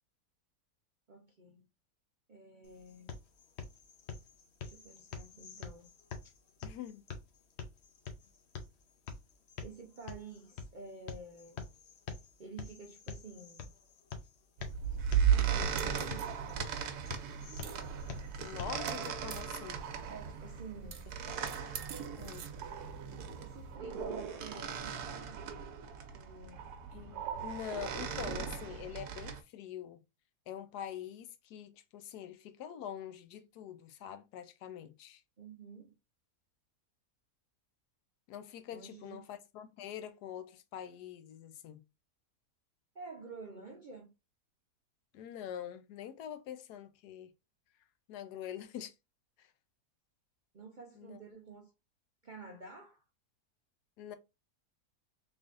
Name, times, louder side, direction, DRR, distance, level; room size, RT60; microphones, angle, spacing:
voice 1, 1.1-1.7 2.3-3.1 4.6-5.9 9.6-11.7 12.4-13.7 15.3-16.6 20.0-21.1 23.4-25.4 26.1-26.7 35.4-36.0 38.7-39.3 42.9-44.1 50.5-51.7 52.2-53.0, right 3 dB, 60° right, 0.5 m, -50 dB
sound 1, 2.6-18.6, left 5 dB, 55° left, 0.8 m, -47 dB
voice 2, 6.6-7.0 18.4-19.8 22.2-22.5 26.9-30.0 30.5-35.2 38.3-41.8 45.1-47.3 48.1-48.9 49.4-49.5 51.0-51.2 54.0-54.2, left 10 dB, 80° left, 1.2 m, -45 dB
sound 2, 14.6-29.4, right 8 dB, 75° right, 1.2 m, -36 dB
3.7 x 3.4 x 2.5 m
omnidirectional pair, 1.7 m